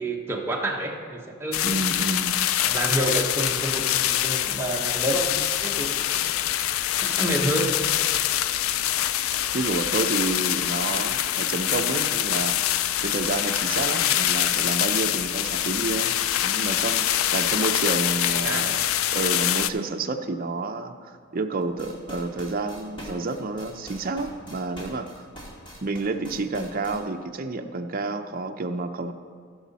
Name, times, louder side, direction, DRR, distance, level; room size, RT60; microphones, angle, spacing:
voice 1, 0.0-1.7 2.6-6.3 7.0-7.8 18.4-18.7, right 1 dB, 10° right, -1 dB, 1.0 m, -28 dB
sound 1, 1.5-19.7, left 12 dB, 80° left, 0.4 m, -25 dB
voice 2, 1.6-2.4 9.5-12.6 13.0-16.1 16.4-18.8 19.1-20.9 21.3-25.1 25.8-29.1, right 3 dB, 45° right, 6 dB, 0.5 m, -29 dB
sound 2, 21.6-27.0, equal, 25° left, 2.1 m, -43 dB
15.5 x 6.2 x 4.1 m, 2.1 s
head